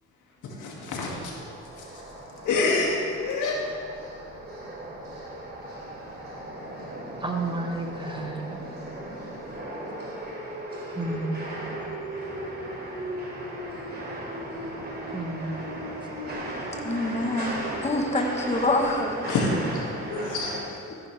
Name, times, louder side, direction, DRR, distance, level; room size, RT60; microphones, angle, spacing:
voice 1, 0.4-1.4 1.8-1.9 2.4-3.6 19.3-20.8, left 3 dB, 80° left, -2 dB, 2.2 m, -27 dB
sound 1, 1.1-20.6, right 1 dB, 35° right, 2.9 m, -36 dB
voice 2, 7.2-8.6 11.0-11.6 15.1-15.7, right 2 dB, 15° right, 2 dB, 1.3 m, -31 dB
voice 3, 16.7-19.2 20.9-21.0, left 2 dB, 20° left, 2 dB, 1.2 m, -26 dB
14.5 x 10.0 x 3.3 m, 2.4 s
cardioid pair, 90°, 30 cm